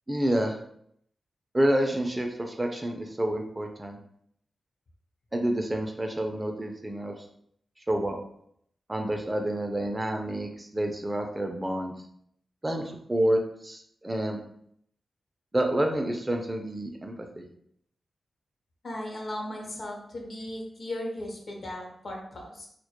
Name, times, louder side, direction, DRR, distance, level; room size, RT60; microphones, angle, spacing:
voice 1, 0.1-0.6 1.5-4.0 5.3-7.2 7.9-8.2 8.9-11.9 12.6-14.4 15.5-17.4, right 1 dB, 20° right, 4 dB, 0.4 m, -28 dB
voice 2, 18.8-22.7, left 1 dB, 60° left, 0 dB, 0.7 m, -37 dB
2.1 x 2.1 x 2.8 m, 0.68 s
cardioid pair, 60°, 0 cm